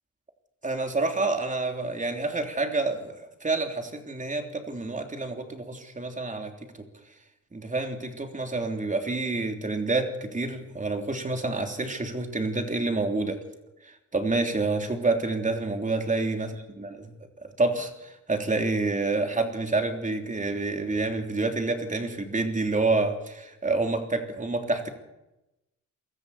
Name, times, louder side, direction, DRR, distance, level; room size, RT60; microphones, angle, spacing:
voice 1, 0.6-6.5 7.5-13.4 13.8-16.5 16.8-17.1 17.4-24.9, right 3 dB, 25° right, 5 dB, 3.4 m, -28 dB
22.0 x 14.0 x 8.5 m, 0.96 s
cardioid pair, 85°, 32 cm